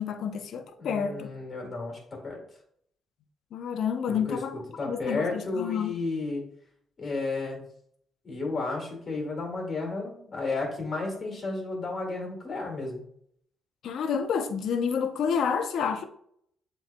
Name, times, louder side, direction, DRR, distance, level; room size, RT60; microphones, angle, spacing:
voice 1, 0.0-1.3 3.5-4.5 4.8-5.9 13.8-16.0, left 7 dB, 70° left, 0.5 m, -29 dB
voice 2, 0.8-2.4 4.1-6.4 7.0-7.7 8.2-13.0, left 3 dB, 40° left, 2.0 m, -33 dB
7.5 x 3.1 x 2.2 m
cardioid pair, 90°, 0 cm